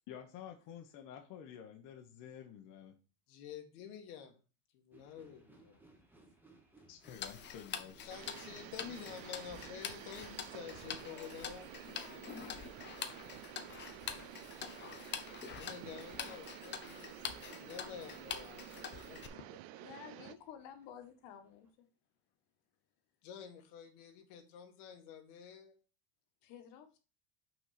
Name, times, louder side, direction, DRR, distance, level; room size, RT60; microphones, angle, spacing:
voice 1, 0.1-2.9 6.9-8.1, left 9 dB, 45° left, 3 dB, 1.0 m, -50 dB
voice 2, 3.3-4.4 4.7-5.8 8.0-12.0 15.5-19.4 23.2-25.8, left 8 dB, 85° left, 4 dB, 1.7 m, -50 dB
sound 1, 4.9-21.7, right 3 dB, 5° right, 1.1 m, -67 dB
Tick-tock, 7.0-19.3, left 8 dB, 25° left, 0.6 m, -46 dB
sound 2, 8.1-20.4, right 16 dB, 55° right, 0.5 m, -51 dB
voice 3, 10.5-11.6 11.9-13.4 16.1-16.2 17.8-18.0 19.3-19.5 19.8-21.9 26.4-27.0, left 8 dB, 70° left, 6 dB, 1.7 m, -55 dB
5.9 x 4.3 x 5.8 m, 0.35 s
cardioid pair, 150°, 43 cm